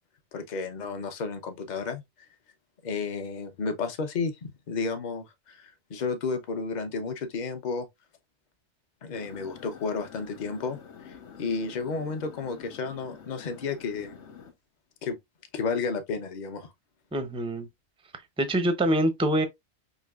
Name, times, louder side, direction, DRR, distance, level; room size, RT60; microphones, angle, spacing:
voice 1, 0.3-2.0 2.8-4.4 4.7-7.9 9.0-10.8 11.0-11.1 11.4-14.3 15.0-15.2 15.5-16.7, left 4 dB, 45° left, 0.8 m, -32 dB
sound 1, 9.1-14.5, left 7 dB, 85° left, 1.3 m, -48 dB
voice 2, 17.1-17.7 18.4-19.4, right 1 dB, 5° right, 0.4 m, -25 dB
5.3 x 2.9 x 2.3 m
omnidirectional pair, 1.2 m